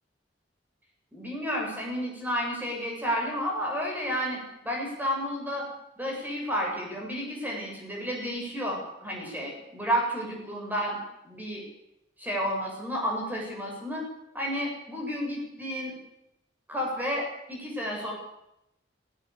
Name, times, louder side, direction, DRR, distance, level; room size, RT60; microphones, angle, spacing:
voice 1, 1.1-5.6 6.0-11.0 11.2-11.6 12.2-14.0 14.3-15.9 16.7-18.1, equal, 10° right, -1 dB, 7.4 m, -31 dB
18.5 x 17.5 x 8.5 m, 0.84 s
head